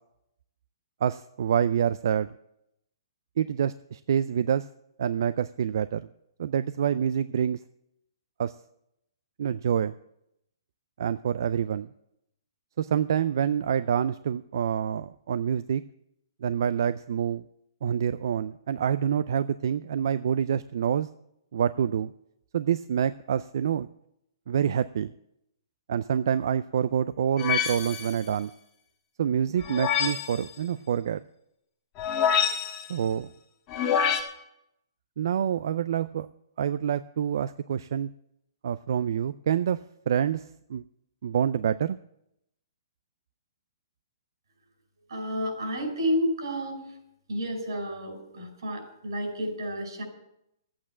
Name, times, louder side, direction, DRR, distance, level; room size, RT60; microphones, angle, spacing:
voice 1, 1.0-2.3 3.4-4.7 5.0-6.0 6.4-7.6 8.4-8.6 9.4-9.9 11.0-11.9 12.8-15.8 16.4-17.4 17.8-21.1 21.5-22.1 22.5-23.9 24.5-25.1 25.9-28.5 29.2-31.2 32.9-33.3 35.2-36.3 36.6-38.1 38.6-39.8 40.1-40.8 41.2-42.0, right 8 dB, 60° right, 14 dB, 0.4 m, -27 dB
sound 1, 27.4-28.2 29.6-30.4 32.0-32.9 33.7-34.2, left 8 dB, 25° left, 1.5 m, -26 dB
voice 2, 45.1-46.8 47.3-50.0, equal, 80° right, 3 dB, 5.2 m, -30 dB
12.5 x 8.6 x 7.3 m, 0.80 s
hypercardioid pair, 165°, 2 cm